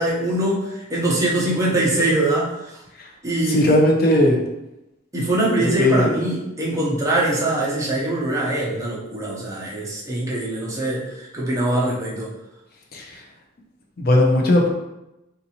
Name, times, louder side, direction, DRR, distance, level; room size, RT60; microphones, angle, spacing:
voice 1, 0.0-2.7 3.2-3.6 5.1-12.3, right 1 dB, 15° right, -6 dB, 0.7 m, -22 dB
voice 2, 3.5-4.4 5.6-6.1 12.9-13.2 14.0-14.7, left 1 dB, 50° left, 1 dB, 0.5 m, -18 dB
3.8 x 2.6 x 2.9 m, 0.93 s
head